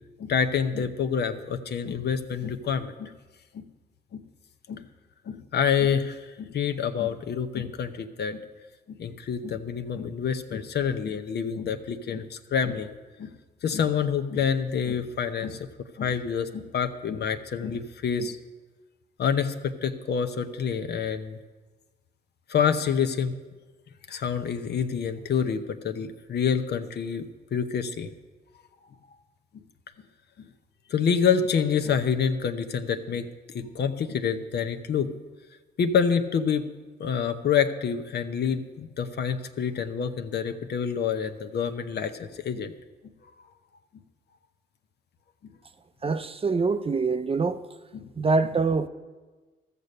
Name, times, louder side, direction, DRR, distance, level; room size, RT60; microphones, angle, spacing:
voice 1, 0.2-3.1 3.5-3.6 4.1-4.2 4.7-4.8 5.3-8.4 8.9-12.9 13.2-13.3 13.6-15.7 16.0-18.4 19.2-21.4 22.5-23.3 24.1-27.3 27.5-28.1 30.9-33.3 33.5-35.2 35.8-36.6 37.0-42.7 47.9-48.1, left 7 dB, 60° left, 0.8 m, -27 dB
voice 2, 46.0-47.6 48.2-48.9, right 4 dB, 30° right, 0.6 m, -24 dB
14.0 x 6.8 x 6.5 m
cardioid pair, 75°, 19 cm